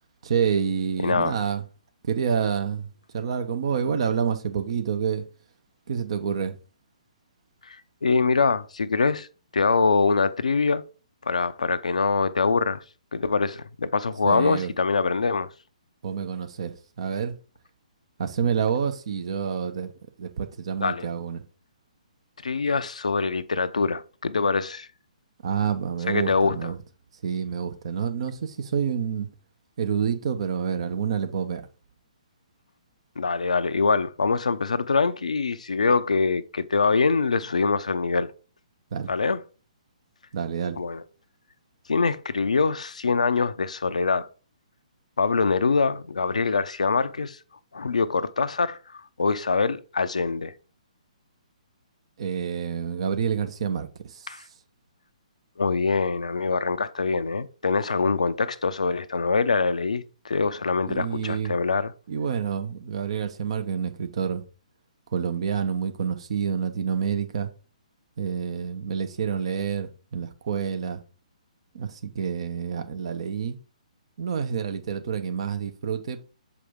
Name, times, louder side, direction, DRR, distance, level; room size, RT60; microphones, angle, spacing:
voice 1, 0.2-1.6 2.0-5.3 5.9-6.6 14.2-14.7 16.0-17.4 18.2-19.9 20.2-21.4 25.4-26.8 27.2-29.3 29.8-31.6 38.9-39.1 40.3-40.8 52.2-54.3 60.9-61.6 62.1-64.4 65.1-67.5 68.2-71.0 71.7-73.6 74.2-76.2, right 7 dB, 50° right, 0.8 m, -28 dB
voice 2, 1.0-1.3 7.6-7.8 8.0-9.3 9.5-10.8 11.2-12.8 13.1-15.5 20.8-21.1 22.4-24.9 26.1-26.6 33.2-38.3 39.1-39.4 40.8-41.0 41.9-44.3 45.2-47.4 47.7-50.5 54.3-54.4 55.6-61.9, left 4 dB, 70° left, 0.5 m, -24 dB
6.8 x 4.8 x 3.6 m
figure-of-eight pair, 130°, 4 cm